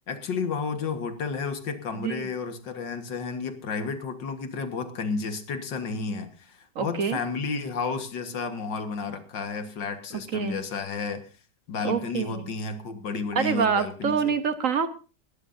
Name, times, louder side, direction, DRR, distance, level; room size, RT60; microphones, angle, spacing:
voice 1, 0.1-11.2 11.7-14.3, left 4 dB, 85° left, 8 dB, 2.2 m, -32 dB
voice 2, 6.8-7.2 10.3-10.6 11.8-12.4 13.3-14.9, right 6 dB, 55° right, 11 dB, 1.2 m, -26 dB
20.5 x 14.5 x 2.7 m, 0.35 s
omnidirectional pair, 1.9 m